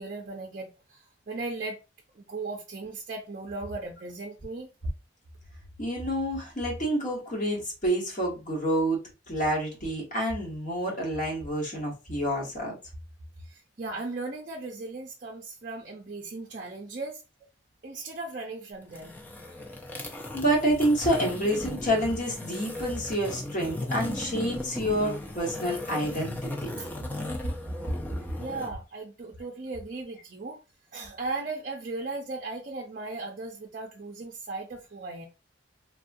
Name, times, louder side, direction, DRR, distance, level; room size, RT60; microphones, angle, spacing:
voice 1, 0.0-1.8 2.2-4.7 13.4-17.2 17.8-19.2 26.0-26.2 26.8-26.9 28.3-30.6 30.9-35.3, right 3 dB, 45° right, 0.5 m, -37 dB
voice 2, 5.8-9.0 9.3-12.7 20.3-26.8, right 1 dB, 40° left, 1.2 m, -28 dB
sound 1, 18.8-28.7, left 1 dB, 10° left, 0.4 m, -37 dB
3.4 x 2.3 x 2.6 m
head